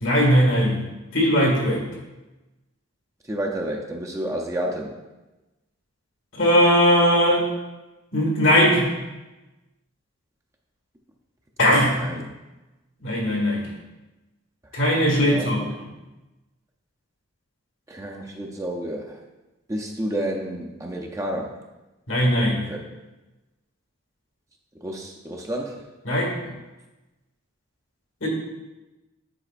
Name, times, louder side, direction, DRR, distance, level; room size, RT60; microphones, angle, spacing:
voice 1, 0.0-0.9 1.1-1.8 6.3-7.5 8.1-8.9 11.6-12.0 13.0-13.6 14.7-15.6 22.1-22.7 26.0-26.3 28.2-28.3, equal, 75° left, -1 dB, 1.7 m, -19 dB
voice 2, 3.3-5.0 12.0-12.3 15.3-15.7 17.9-19.2 19.7-21.6 22.7-23.0 24.8-25.8, right 1 dB, 15° right, 1 dB, 0.5 m, -30 dB
9.8 x 4.4 x 2.4 m, 1.1 s
head